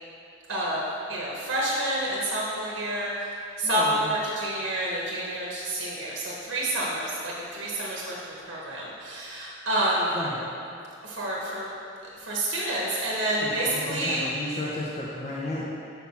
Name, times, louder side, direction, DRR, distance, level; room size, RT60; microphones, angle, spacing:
voice 1, 0.5-3.3 3.6-10.2 11.0-11.7 12.2-14.3, right 1 dB, 70° right, -5 dB, 1.0 m, -28 dB
voice 2, 3.6-4.1 10.1-10.4 13.4-15.6, left 1 dB, 35° left, -5 dB, 0.6 m, -33 dB
7.0 x 5.8 x 2.8 m, 2.6 s
head